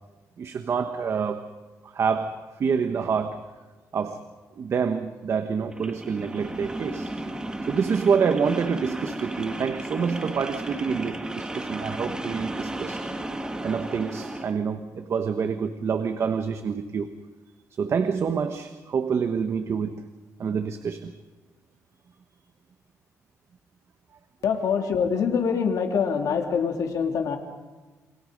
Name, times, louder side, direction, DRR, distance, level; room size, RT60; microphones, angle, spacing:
voice 1, 0.4-1.6 1.9-3.5 3.9-4.3 4.6-7.1 7.6-13.0 13.6-17.1 17.8-20.0 20.4-21.1, right 6 dB, 50° right, 8 dB, 1.3 m, -27 dB
sound 1, 5.7-14.5, right 1 dB, 15° right, 2.0 m, -34 dB
voice 2, 24.4-27.4, left 6 dB, 75° left, 4 dB, 3.0 m, -24 dB
29.0 x 24.0 x 5.3 m, 1.3 s
cardioid pair, 125°, 6 cm